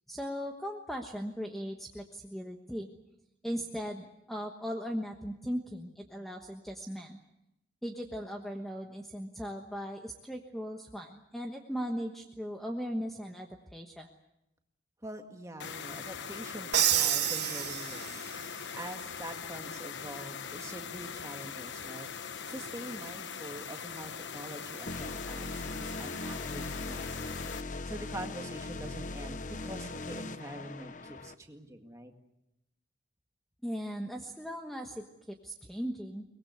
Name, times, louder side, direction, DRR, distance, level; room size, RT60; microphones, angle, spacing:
voice 1, 0.1-2.9 3.4-7.2 7.8-14.1 33.6-36.2, equal, ahead, 2 dB, 1.2 m, -38 dB
voice 2, 15.0-18.3 18.7-32.1, right 1 dB, 15° right, 4 dB, 1.9 m, -45 dB
sound 1, 15.6-27.6, left 6 dB, 75° left, 1.0 m, -41 dB
Crash cymbal, 16.7-18.5, right 11 dB, 65° right, 1.3 m, -28 dB
sound 2, 24.9-31.3, left 2 dB, 40° left, 0.9 m, -39 dB
23.5 x 21.0 x 8.0 m, 0.86 s
head